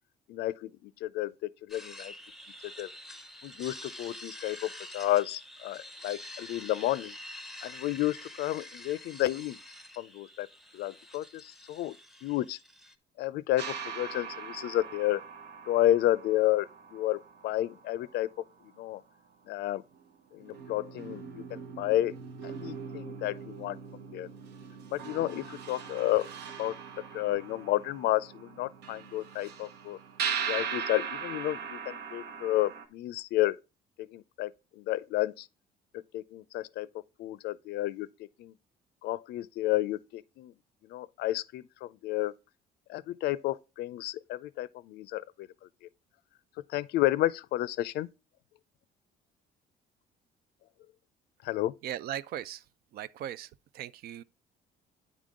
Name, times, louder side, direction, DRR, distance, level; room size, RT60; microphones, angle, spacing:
voice 1, 0.3-2.1 2.8-2.9 3.4-7.1 7.6-9.6 10.0-10.5 10.7-12.0 12.2-12.6 13.2-15.2 15.7-18.3 18.8-19.0 19.5-19.8 20.3-22.1 22.4-24.3 24.9-26.3 26.6-26.7 27.1-30.0 30.5-33.6 34.0-35.5 36.1-36.9 37.2-38.1 38.4-38.5 39.0-40.5 40.8-42.3 42.9-45.5 46.7-48.1 51.4-51.7, left 15 dB, 75° left, 0.4 m, -31 dB
sound 1, 1.7-12.9, left 1 dB, ahead, 0.7 m, -47 dB
sound 2, 13.6-18.4 19.9-20.0 20.4-32.9, right 6 dB, 80° right, 1.0 m, -40 dB
voice 2, 51.8-52.6 52.9-54.2, right 11 dB, 65° right, 0.4 m, -38 dB
9.5 x 3.7 x 3.6 m
cardioid pair, 110°, 17 cm